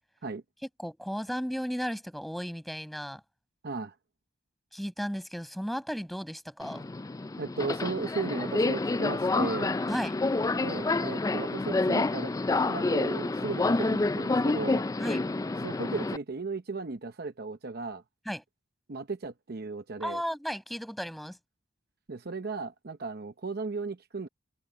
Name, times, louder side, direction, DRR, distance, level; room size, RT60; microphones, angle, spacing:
voice 1, 0.8-3.2 4.7-6.9 9.9-10.2 15.0-15.2 18.3-18.4 20.0-21.4, equal, ahead, 6.0 m, -34 dB
voice 2, 3.6-3.9 7.4-9.7 10.5-12.3 12.7-14.8 15.6-18.0 18.9-20.2 22.1-24.3, right 3 dB, 50° right, 0.8 m, -35 dB
Subway metro underground, 6.6-16.2, left 3 dB, 15° left, 0.3 m, -28 dB
head